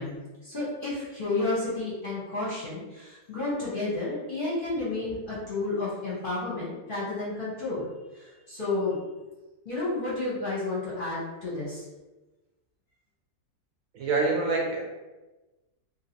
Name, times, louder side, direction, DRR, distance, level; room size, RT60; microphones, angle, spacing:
voice 1, 0.0-9.0 9.6-11.8, left 2 dB, 40° left, -8 dB, 0.9 m, -31 dB
voice 2, 13.9-14.8, right 3 dB, 70° right, -1 dB, 0.9 m, -26 dB
2.9 x 2.7 x 2.8 m, 1.1 s
omnidirectional pair, 1.6 m